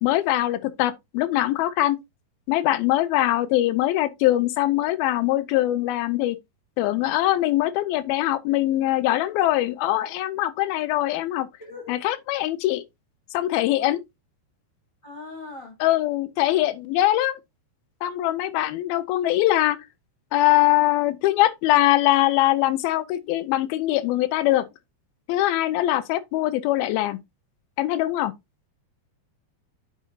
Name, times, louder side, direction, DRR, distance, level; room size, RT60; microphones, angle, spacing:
voice 1, 0.0-2.0 2.5-6.4 6.8-11.5 11.9-12.8 13.3-14.0 15.8-17.4 18.0-19.8 20.3-24.7 25.3-27.2 27.8-28.3, left 15 dB, 85° left, 2.5 m, -22 dB
voice 2, 11.6-12.0 13.8-14.0 15.0-15.8, left 4 dB, 10° left, 3.5 m, -39 dB
8.9 x 6.3 x 2.7 m
omnidirectional pair, 4.4 m